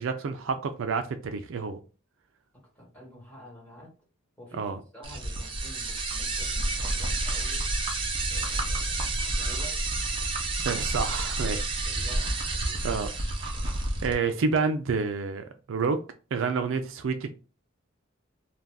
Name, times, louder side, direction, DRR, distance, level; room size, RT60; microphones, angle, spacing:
voice 1, 0.0-1.8 4.6-4.8 10.6-11.7 12.8-13.1 14.0-16.0 16.3-17.3, right 5 dB, 70° right, 0.4 m, -28 dB
voice 2, 2.5-3.9 4.4-7.7 8.3-9.8 11.8-12.9 13.4-13.7, equal, 5° left, 1.4 m, -49 dB
sound 1, 5.0-14.1, right 2 dB, 25° right, 0.6 m, -29 dB
2.5 x 2.2 x 3.4 m
head